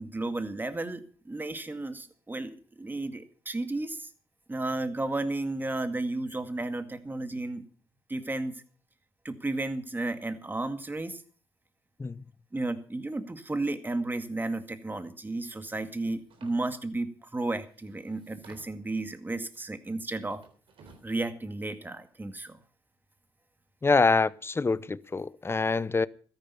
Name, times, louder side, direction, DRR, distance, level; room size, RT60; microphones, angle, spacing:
voice 1, 0.0-4.1 4.5-7.7 8.1-8.6 9.2-11.2 12.5-20.4 21.0-22.6, right 2 dB, 20° right, 2.1 m, -33 dB
sound 1, 16.3-16.6 17.4-17.5 17.8-18.9 20.2-21.3, right 4 dB, 70° right, 3.6 m, -54 dB
voice 2, 23.8-26.1, left 4 dB, 25° left, 0.7 m, -25 dB
14.0 x 10.5 x 7.0 m
supercardioid pair, 60°, 10 cm